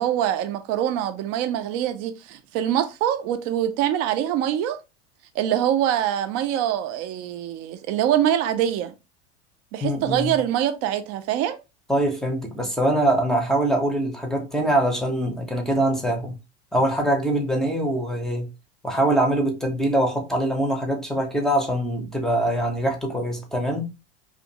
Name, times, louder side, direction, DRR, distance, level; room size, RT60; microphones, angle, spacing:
voice 1, 0.0-4.8 5.3-8.9 9.7-11.6, right 11 dB, 40° right, 0.5 m, -24 dB
voice 2, 9.8-10.3 11.9-16.4 16.7-18.5 18.8-23.9, right 1 dB, ahead, 0.7 m, -23 dB
2.5 x 2.5 x 2.7 m
figure-of-eight pair, 80°, 35 cm